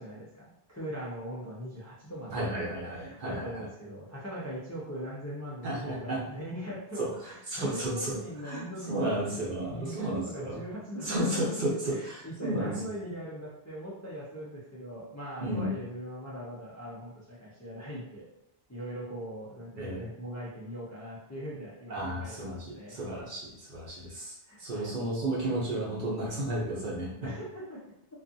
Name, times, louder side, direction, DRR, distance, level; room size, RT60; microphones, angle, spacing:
voice 1, 0.0-2.4 2.9-9.3 9.7-11.4 11.8-18.3 18.7-23.0 24.4-24.9 27.2-27.8, equal, 25° left, -7 dB, 0.3 m, -40 dB
voice 2, 2.3-3.6 5.6-6.2 7.0-8.1 8.4-10.6 11.0-12.7 15.4-15.7 19.8-20.1 21.9-24.3 24.6-27.3, right 1 dB, 50° right, -5 dB, 0.8 m, -33 dB
2.5 x 2.3 x 2.6 m, 0.86 s
omnidirectional pair, 1.2 m